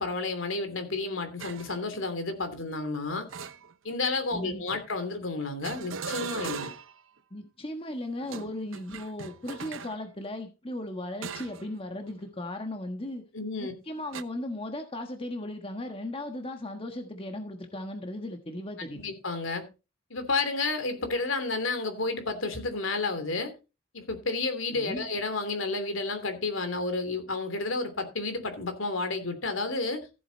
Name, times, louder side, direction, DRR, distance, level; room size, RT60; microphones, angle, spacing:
voice 1, 0.0-3.3 3.8-6.7 13.3-13.7 18.9-19.6 20.1-23.5 23.9-30.1, left 3 dB, 70° left, 3.0 m, -31 dB
sound 1, 1.4-1.8 3.3-4.1 5.6-7.0 8.2-10.0 11.2-11.7 12.1-12.3 14.1-14.2, right 5 dB, 70° right, 0.9 m, -39 dB
voice 2, 4.3-4.6 7.3-13.2 13.6-19.0 24.7-25.0, left 1 dB, 25° left, 1.4 m, -36 dB
15.0 x 7.8 x 4.1 m
head